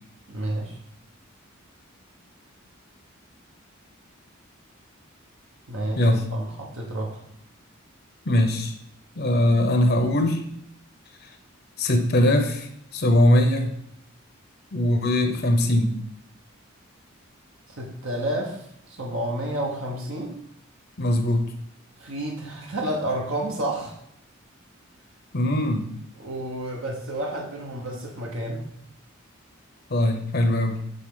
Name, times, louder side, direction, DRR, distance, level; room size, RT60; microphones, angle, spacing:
voice 1, 0.3-0.8 5.7-7.2 17.7-20.4 22.0-24.0 26.2-28.6, right 1 dB, 70° right, 0 dB, 1.1 m, -30 dB
voice 2, 8.3-8.8 9.2-10.4 11.8-13.7 14.7-15.9 21.0-21.5 25.3-25.9 29.9-30.8, left 1 dB, 50° left, 6 dB, 0.8 m, -21 dB
7.7 x 3.9 x 3.8 m, 0.72 s
head